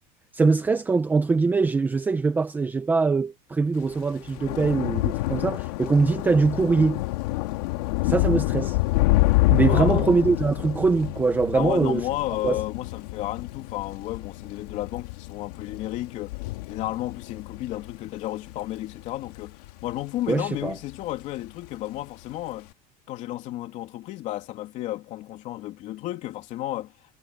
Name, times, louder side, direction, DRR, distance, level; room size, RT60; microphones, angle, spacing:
voice 1, 0.3-7.0 8.0-8.8 9.5-12.1 12.4-12.6 20.3-20.7, right 4 dB, 10° right, 0.8 m, -22 dB
Thunder / Rain, 3.8-20.4 20.8-21.2 21.5-21.7, left 20 dB, 85° left, 3.0 m, -27 dB
voice 2, 9.7-10.4 11.5-16.4 16.7-22.7 23.1-26.9, left 15 dB, 40° left, 3.2 m, -32 dB
cardioid pair, 175°, 19 cm